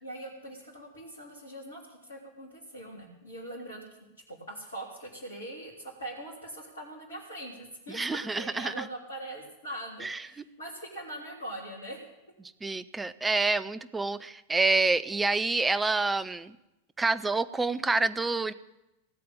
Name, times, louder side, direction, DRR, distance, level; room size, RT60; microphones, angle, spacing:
voice 1, 0.0-3.8 4.3-8.0 8.4-12.0, right 1 dB, 70° left, -6 dB, 3.6 m, -42 dB
voice 2, 7.9-8.9 10.0-10.4 12.4-16.6 17.0-18.5, right 3 dB, 10° right, 14 dB, 0.6 m, -28 dB
18.0 x 7.7 x 8.8 m, 0.95 s
figure-of-eight pair, 90°, 0 cm